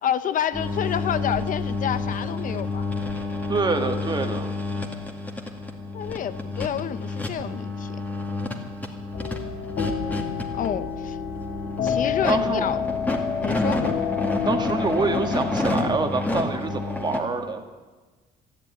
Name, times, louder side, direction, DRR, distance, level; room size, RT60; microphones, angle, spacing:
voice 1, 0.0-2.9 5.9-8.0 10.5-11.2 11.8-12.8 13.4-13.8, left 9 dB, 50° left, 13 dB, 0.9 m, -28 dB
sound 1, 0.5-17.2, left 2 dB, 10° left, 2.3 m, -30 dB
voice 2, 3.5-4.5 12.3-12.7 14.4-17.6, right 3 dB, 25° right, 5 dB, 1.8 m, -26 dB
sound 2, 9.1-16.0, left 7 dB, 70° left, 2.1 m, -29 dB
13.5 x 11.0 x 9.4 m, 1.3 s
cardioid pair, 110°, 17 cm